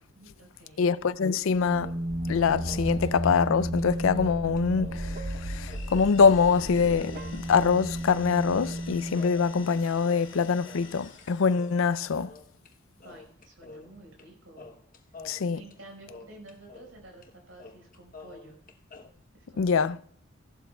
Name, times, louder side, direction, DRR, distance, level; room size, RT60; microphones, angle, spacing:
voice 1, 0.1-0.9 13.0-14.7 15.6-18.6 19.3-19.9, right 2 dB, 80° right, 4.8 m, -51 dB
voice 2, 0.8-1.9 2.3-12.3 15.2-15.6 19.6-20.0, left 5 dB, 85° left, 0.4 m, -24 dB
sound 1, 1.5-10.1, right 1 dB, 50° right, 0.8 m, -34 dB
sound 2, 1.8-2.4 2.6-5.0 5.3-5.4 5.7-11.3 11.5-12.7 13.0-14.3 14.6-17.0 17.2-17.3 17.6-19.1, left 3 dB, 45° left, 1.0 m, -49 dB
sound 3, 5.3-12.0, left 6 dB, 70° left, 2.2 m, -50 dB
17.0 x 12.0 x 2.3 m
head